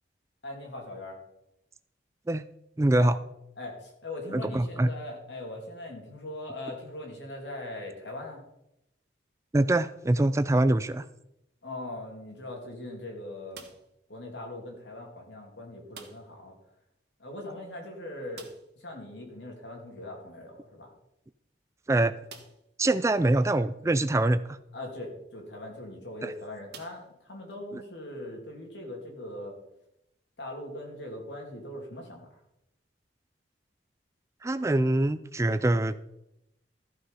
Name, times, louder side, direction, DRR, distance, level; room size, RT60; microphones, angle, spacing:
voice 1, 0.4-1.2 2.9-3.1 3.6-8.4 11.6-13.6 14.1-16.5 17.2-18.5 18.8-20.9 24.7-27.0 27.2-29.6 30.4-32.4, left 1 dB, 80° left, 1 dB, 3.0 m, -40 dB
voice 2, 2.8-3.2 4.3-4.9 9.5-11.0 21.9-22.1 22.8-24.6 26.2-26.3 34.4-35.9, right 1 dB, 15° right, 14 dB, 0.3 m, -24 dB
sound 1, 13.5-14.1 15.9-16.5 16.7-16.8 17.1-17.2 18.3-18.9 20.6-20.7 21.3-21.4 22.2-22.8 23.5-23.6 25.6-25.8 26.7-27.6, right 6 dB, 65° right, 1.4 m, -49 dB
14.0 x 6.1 x 5.6 m, 0.84 s
head